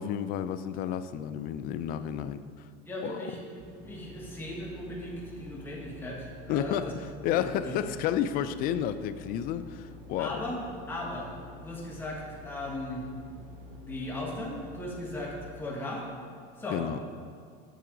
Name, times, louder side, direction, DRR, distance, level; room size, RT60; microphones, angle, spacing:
voice 1, 0.0-2.4 3.0-3.2 6.5-10.4 16.7-17.0, left 9 dB, 50° left, 12 dB, 0.4 m, -31 dB
voice 2, 2.9-6.9 7.3-7.8 10.2-10.6 10.9-11.3 11.6-13.1 13.8-16.1 16.6-17.0, left 1 dB, 10° left, -4 dB, 1.5 m, -37 dB
sound 1, 3.6-15.4, left 2 dB, 45° right, 1.5 m, -48 dB
7.7 x 6.8 x 3.9 m, 2.2 s
cardioid pair, 135°, 19 cm